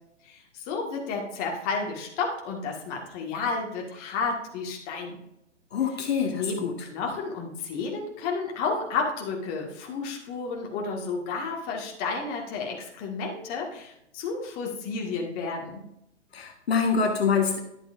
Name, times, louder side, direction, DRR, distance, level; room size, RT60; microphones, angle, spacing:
voice 1, 0.2-5.2 6.3-15.8, left 4 dB, 25° left, 0 dB, 1.8 m, -31 dB
voice 2, 5.7-6.7 16.3-17.6, left 6 dB, 60° left, 4 dB, 1.3 m, -25 dB
11.5 x 7.7 x 2.5 m, 0.82 s
figure-of-eight pair, 130°, 36 cm